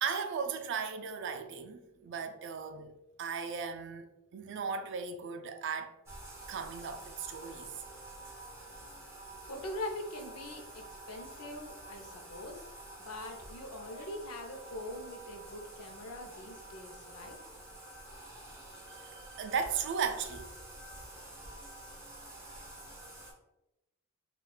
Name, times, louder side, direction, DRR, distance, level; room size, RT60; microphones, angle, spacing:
voice 1, 0.0-2.9 3.2-5.9 6.5-7.7 18.9-20.5, right 6 dB, 55° right, 0.3 m, -36 dB
Bathtub (filling or washing), 6.1-23.3, right 1 dB, 10° right, 0.6 m, -49 dB
voice 2, 9.4-12.7 13.0-17.4, left 1 dB, 85° left, 0.6 m, -43 dB
3.7 x 2.3 x 2.3 m
head